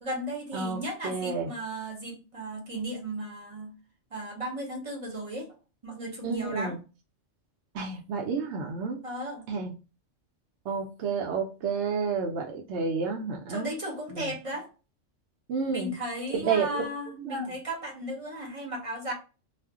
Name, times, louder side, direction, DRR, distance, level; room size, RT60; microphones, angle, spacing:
voice 1, 0.0-3.8 4.1-5.5 5.8-6.7 9.0-9.4 13.5-14.7 15.7-19.1, right 1 dB, 35° right, 1 dB, 0.7 m, -35 dB
voice 2, 1.0-1.5 6.2-6.8 7.7-9.0 9.5-9.7 10.7-13.7 14.1-14.3 15.5-15.9 16.3-16.9 17.3-17.6, right 5 dB, 70° right, 1 dB, 0.8 m, -30 dB
2.4 x 2.0 x 3.5 m, 0.32 s
omnidirectional pair, 1.3 m